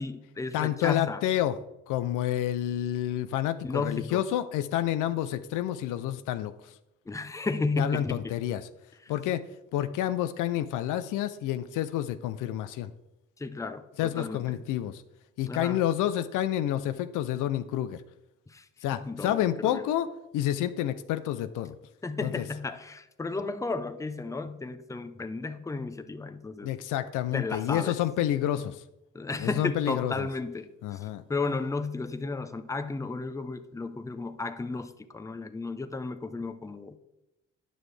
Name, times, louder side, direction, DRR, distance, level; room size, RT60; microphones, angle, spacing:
voice 1, 0.0-1.2 3.6-4.2 7.1-8.4 13.4-13.8 14.2-14.4 15.5-15.8 18.5-18.7 18.9-19.8 22.0-26.7 27.3-28.0 29.1-37.0, left 3 dB, 10° left, 9 dB, 0.5 m, -33 dB
voice 2, 0.5-1.6 1.9-6.7 7.8-8.7 9.1-9.5 9.7-12.9 14.0-15.0 15.4-18.0 18.8-21.7 22.2-22.4 26.6-28.8 29.4-30.3 30.8-31.2, left 12 dB, 90° left, 12 dB, 0.5 m, -29 dB
9.2 x 6.1 x 3.3 m, 0.93 s
cardioid pair, 90°, 30 cm